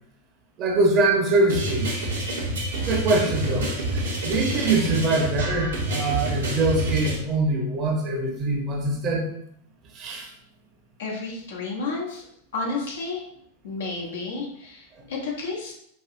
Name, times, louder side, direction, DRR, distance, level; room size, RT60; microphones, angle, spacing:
voice 1, 0.6-2.1 2.9-3.7 4.2-9.3 9.9-10.3, right 2 dB, 35° right, 0 dB, 0.9 m, -23 dB
sound 1, 1.5-7.1, right 1 dB, 65° right, 0.9 m, -27 dB
voice 2, 11.0-12.2 12.5-13.2 13.6-15.7, left 3 dB, 60° left, -2 dB, 0.9 m, -31 dB
4.5 x 2.7 x 2.5 m, 0.71 s
figure-of-eight pair, 90°, 0 cm